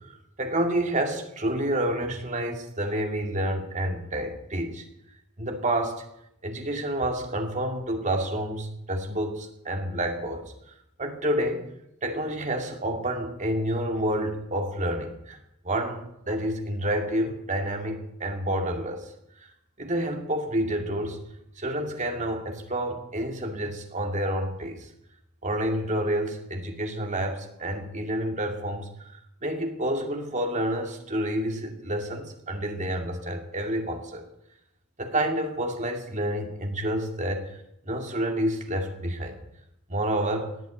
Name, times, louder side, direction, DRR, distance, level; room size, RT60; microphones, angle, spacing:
voice 1, 0.0-4.9 5.4-6.0 6.4-10.5 11.0-11.7 12.0-15.4 15.6-19.1 19.4-19.5 19.8-21.2 21.6-24.9 25.4-34.3 35.0-37.6 37.9-39.3 39.9-40.5, right 1 dB, 35° right, 4 dB, 2.4 m, -29 dB
18.5 x 8.4 x 9.1 m, 0.81 s
head